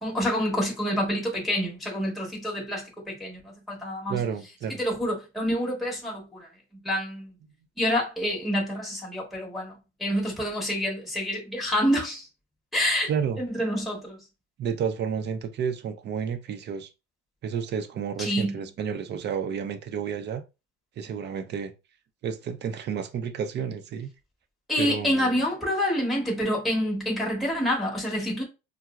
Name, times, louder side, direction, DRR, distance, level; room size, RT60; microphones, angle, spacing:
voice 1, 0.0-4.2 4.8-6.5 6.8-7.3 7.8-9.7 10.0-12.3 12.7-13.1 13.4-14.2 18.2-18.5 24.7-28.4, equal, ahead, 1.1 m, -27 dB
voice 2, 4.1-4.8 13.1-13.4 14.6-16.9 17.4-20.4 21.0-21.7 22.2-24.1 24.8-25.4, right 7 dB, 35° right, 0.5 m, -31 dB
4.4 x 2.0 x 2.3 m
supercardioid pair, 110°, 33 cm